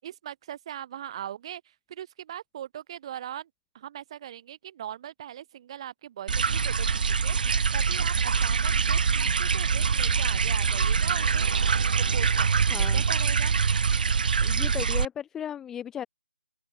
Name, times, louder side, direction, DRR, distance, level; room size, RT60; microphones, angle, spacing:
voice 1, 0.0-1.6 1.9-3.5 3.7-11.6 12.0-13.5, right 11 dB, 30° right, 5.3 m, -40 dB
sound 1, 6.3-15.0, right 5 dB, 50° right, 1.3 m, -24 dB
voice 2, 12.7-13.0 14.4-16.1, left 9 dB, 5° left, 0.7 m, -35 dB
open air
figure-of-eight pair, 160°, 6 cm